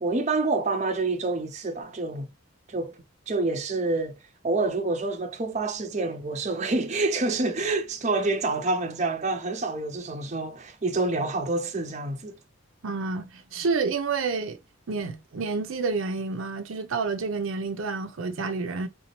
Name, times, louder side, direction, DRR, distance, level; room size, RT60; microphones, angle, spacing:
voice 1, 0.0-2.3 2.7-4.1 4.4-12.4, right 3 dB, 35° right, 0.6 m, -27 dB
voice 2, 12.8-14.6 14.9-18.9, right 4 dB, 75° right, 0.6 m, -29 dB
3.7 x 2.8 x 2.9 m
head